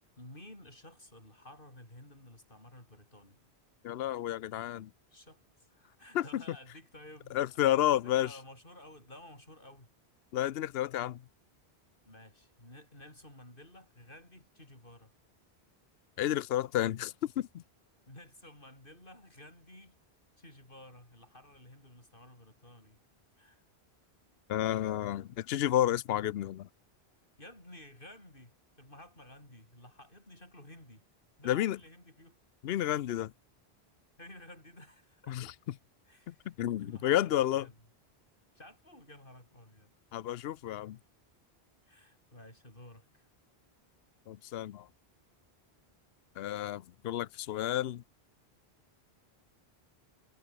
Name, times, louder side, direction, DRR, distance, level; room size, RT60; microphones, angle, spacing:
voice 1, 0.2-3.4 5.1-7.6 7.9-9.9 12.1-15.1 18.1-19.9 20.4-23.0 23.4-23.6 27.4-31.1 31.4-32.4 34.2-35.5 36.1-37.8 38.5-39.9 41.8-43.3, left 1 dB, 55° left, 7.3 m, -53 dB
voice 2, 3.8-4.9 6.1-6.4 7.3-8.3 10.3-11.2 16.2-17.6 24.5-26.7 31.4-31.8 32.6-33.3 35.3-35.5 36.3-37.7 40.1-41.0 44.3-44.9 46.4-48.0, left 12 dB, 75° left, 0.8 m, -31 dB
omnidirectional pair, 1.1 m